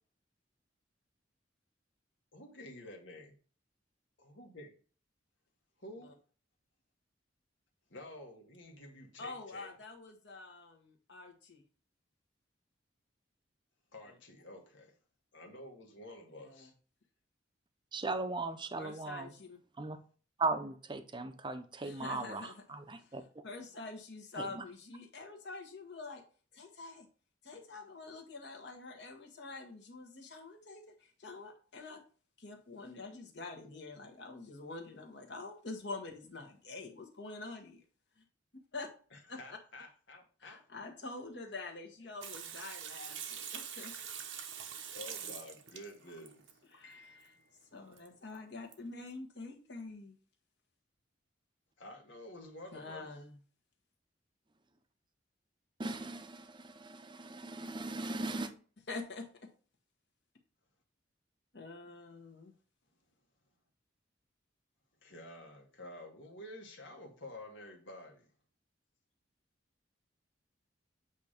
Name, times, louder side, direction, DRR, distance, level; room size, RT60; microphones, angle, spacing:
voice 1, 2.3-3.3 4.2-4.7 5.8-6.1 7.9-9.7 13.9-14.9 15.3-16.7 39.1-40.6 44.9-46.4 46.8-47.5 51.8-53.1 65.0-68.3, left 1 dB, 85° left, 2 dB, 1.7 m, -50 dB
voice 2, 9.2-11.6 14.1-14.2 16.4-16.7 18.8-19.6 21.8-22.6 23.0-23.1 23.4-26.2 26.5-27.1 27.4-32.0 32.4-37.8 38.2-38.3 38.7-38.9 39.3-39.4 40.4-43.9 46.7-47.3 47.7-50.1 52.7-53.4 58.9-59.2 61.5-62.5, left 3 dB, 65° left, 2 dB, 1.5 m, -46 dB
voice 3, 17.9-19.3 19.8-20.0 20.4-23.2 24.4-24.6 55.8-58.5, right 3 dB, 25° right, 8 dB, 0.7 m, -38 dB
Water tap faucet / Sink (filling or washing), 42.2-46.5 48.0-48.1 48.3-48.4 48.7-48.8, right 8 dB, 85° right, 1.0 m, -44 dB
8.2 x 2.9 x 5.1 m, 0.39 s
head